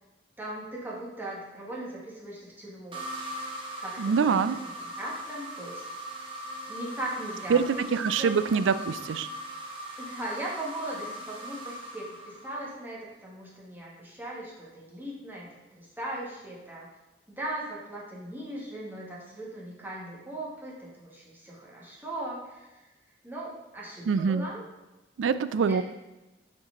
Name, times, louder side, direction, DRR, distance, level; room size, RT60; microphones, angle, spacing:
voice 1, 0.4-3.1 3.8-5.8 6.7-8.6 10.0-16.9 17.3-22.8 23.2-24.6 25.7-25.8, right 1 dB, 10° right, -5 dB, 1.6 m, -39 dB
sound 1, 2.9-12.9, equal, 30° right, 1.2 m, -40 dB
voice 2, 4.0-4.6 7.5-7.6 7.9-9.3 24.1-24.5 25.2-25.8, right 6 dB, 80° right, 13 dB, 0.4 m, -24 dB
8.6 x 4.6 x 3.8 m, 1.1 s
head